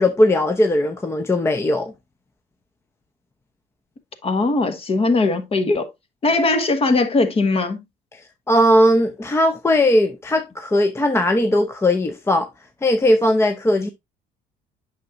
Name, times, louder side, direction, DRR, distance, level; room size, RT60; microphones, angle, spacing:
voice 1, 0.0-1.9 8.1-8.2 8.5-12.5 12.8-13.9, left 1 dB, 15° left, 0.7 m, -18 dB
voice 2, 4.2-5.9 6.2-7.8, left 3 dB, 35° left, 1.2 m, -19 dB
8.3 x 6.1 x 2.5 m
cardioid pair, 110°, 17 cm